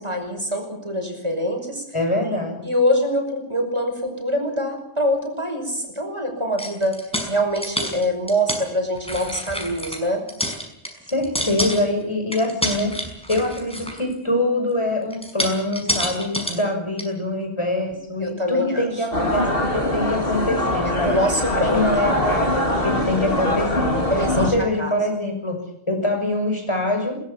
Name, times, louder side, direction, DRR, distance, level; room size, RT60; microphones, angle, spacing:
voice 1, 0.0-1.8 2.6-7.0 7.3-10.2 18.2-19.0 20.8-22.2 24.1-25.1, equal, 25° right, 3 dB, 5.7 m, -24 dB
voice 2, 1.9-2.6 11.1-12.9 13.3-21.2 21.5-24.0 24.4-25.6 25.9-27.1, left 1 dB, 25° left, 3 dB, 6.2 m, -24 dB
sound 1, 6.6-8.6 9.0-10.0 10.3-12.0 12.3-14.1 15.1-16.6 17.0-17.1, equal, 5° left, 5.6 m, -28 dB
sound 2, 19.1-24.5, left 1 dB, 55° left, 3.9 m, -22 dB
21.5 x 19.5 x 7.0 m, 0.76 s
omnidirectional pair, 1.2 m